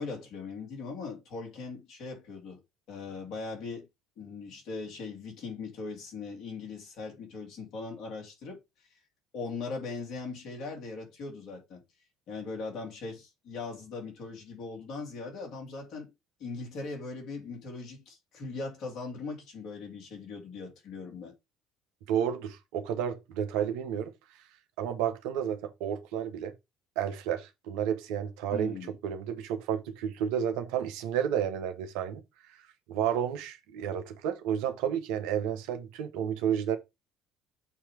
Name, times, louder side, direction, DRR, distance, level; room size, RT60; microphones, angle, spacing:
voice 1, 0.0-2.6 2.9-3.9 4.2-8.6 9.3-11.8 12.3-16.1 16.4-21.3 28.5-28.9, left 4 dB, 65° left, 2.8 m, -40 dB
voice 2, 22.1-24.1 24.8-26.5 27.0-28.8 29.0-32.2 32.9-36.8, right 9 dB, 75° right, 1.0 m, -31 dB
7.2 x 3.0 x 4.8 m
hypercardioid pair, 65°, 0 cm